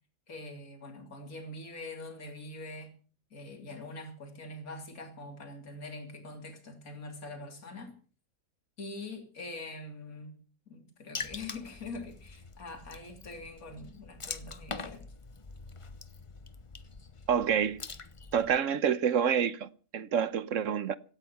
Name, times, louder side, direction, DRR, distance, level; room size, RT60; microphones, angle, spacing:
voice 1, 0.3-2.9 3.3-7.9 8.8-10.4 10.7-15.1, left 2 dB, 65° left, 3.5 m, -44 dB
Water / Splash splatter, 11.1-18.6, left 4 dB, 25° left, 0.8 m, -44 dB
voice 2, 17.3-17.8 18.3-21.0, right 8 dB, 60° right, 1.2 m, -28 dB
17.0 x 13.5 x 5.9 m
omnidirectional pair, 1.6 m